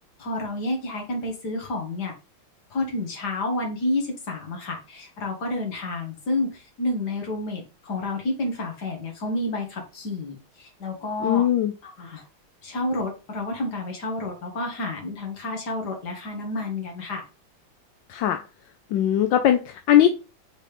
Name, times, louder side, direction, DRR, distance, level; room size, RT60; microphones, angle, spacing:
voice 1, 0.2-2.1 2.7-11.4 11.8-12.2 12.6-17.2, left 2 dB, 50° left, 2 dB, 2.2 m, -30 dB
voice 2, 11.2-11.7 18.1-18.4 18.9-20.1, left 11 dB, 70° left, 7 dB, 1.2 m, -19 dB
5.2 x 4.0 x 5.0 m, 0.32 s
omnidirectional pair, 2.3 m